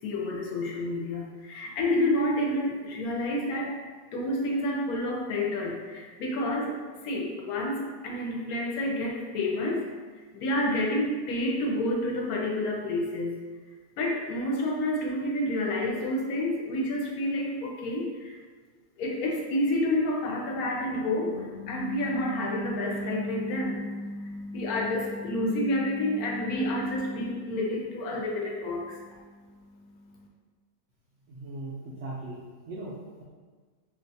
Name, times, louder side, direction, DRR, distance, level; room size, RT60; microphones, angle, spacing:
voice 1, 0.0-3.7 4.1-6.8 7.0-9.8 10.3-13.3 14.0-18.4 19.0-30.3, left 1 dB, 70° left, -1 dB, 1.0 m, -29 dB
voice 2, 31.3-33.2, right 2 dB, 70° right, -6 dB, 0.7 m, -39 dB
2.8 x 2.3 x 3.9 m, 1.5 s
omnidirectional pair, 1.7 m